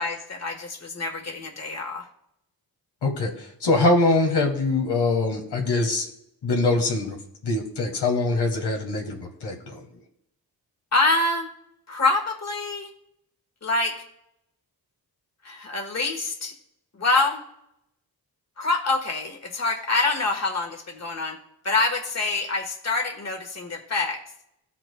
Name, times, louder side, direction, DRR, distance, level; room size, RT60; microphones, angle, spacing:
voice 1, 0.0-2.1 10.9-11.5 11.9-12.9 13.6-13.9 15.4-16.5 17.0-17.4 18.6-21.4 21.6-24.2, left 3 dB, 40° left, 2 dB, 1.5 m, -25 dB
voice 2, 3.0-6.1 6.4-7.2 7.4-9.8, left 2 dB, 85° left, 2 dB, 1.6 m, -23 dB
15.5 x 5.9 x 2.3 m, 0.76 s
wide cardioid pair, 95°, 39 cm